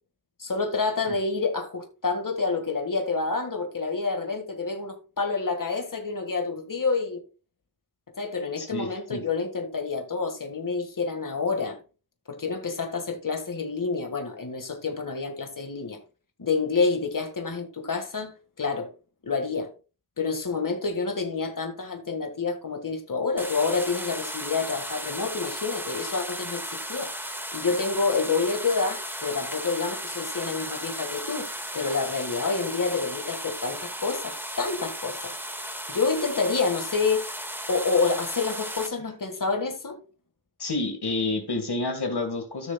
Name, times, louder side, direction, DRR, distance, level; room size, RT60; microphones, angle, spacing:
voice 1, 0.4-7.2 8.2-11.8 12.3-16.0 16.4-18.3 18.6-18.9 19.2-19.7 20.2-27.1 27.5-31.5 31.7-35.3 35.9-37.2 37.7-40.0, left 4 dB, 55° left, 1.6 m, -28 dB
voice 2, 8.6-9.2 40.6-42.7, left 3 dB, 80° left, 1.7 m, -29 dB
sound 1, 23.4-38.9, equal, 5° right, 1.6 m, -35 dB
14.0 x 6.3 x 2.2 m
wide cardioid pair, 45°, 39 cm